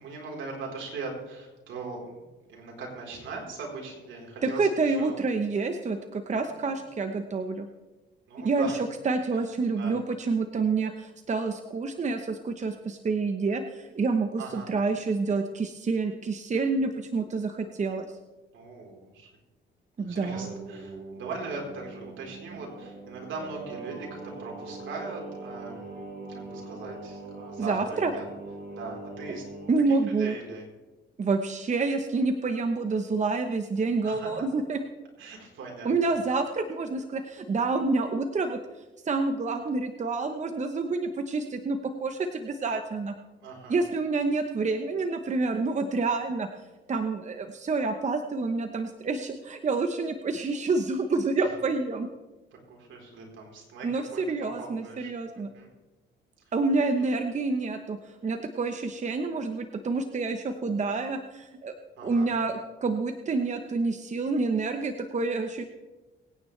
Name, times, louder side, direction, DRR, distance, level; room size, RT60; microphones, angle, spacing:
voice 1, 0.0-2.2 2.5-5.1 6.5-6.8 8.3-8.8 9.3-9.5 9.7-9.9 14.4-14.7 18.5-19.3 20.0-28.3 28.7-29.4 29.9-30.7 34.0-34.4 35.2-36.2 43.4-43.8 52.5-54.2 54.6-55.1 55.5-55.7 62.0-62.3, right 3 dB, 75° right, -1 dB, 4.0 m, -40 dB
voice 2, 4.4-7.7 8.4-8.7 9.0-18.1 20.0-20.5 27.6-28.1 29.7-30.4 31.2-34.8 35.8-38.6 39.0-43.1 43.7-46.5 46.9-52.1 53.8-55.5 56.5-61.7 62.0-62.5 62.8-65.6, right 3 dB, 35° right, 6 dB, 1.0 m, -28 dB
Singing, 20.0-29.7, right 3 dB, 55° right, 5.1 m, -42 dB
24.0 x 9.4 x 3.3 m, 1.1 s
cardioid pair, 90°, 20 cm